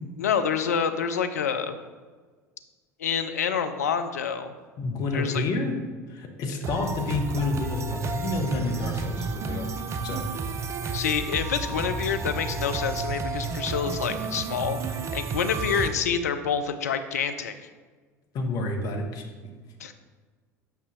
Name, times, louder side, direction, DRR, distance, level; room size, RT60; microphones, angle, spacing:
voice 1, 0.2-1.8 3.0-4.5 5.1-5.4 10.9-17.5 19.8-19.9, left 7 dB, 75° left, 8 dB, 0.5 m, -27 dB
voice 2, 4.8-5.8 6.1-9.7 10.0-10.2 18.3-19.2, left 2 dB, 45° left, 2 dB, 1.3 m, -29 dB
sound 1, 6.6-15.9, right 4 dB, 35° right, 0.7 m, -31 dB
8.8 x 5.5 x 3.1 m, 1.5 s
figure-of-eight pair, 65°, 9 cm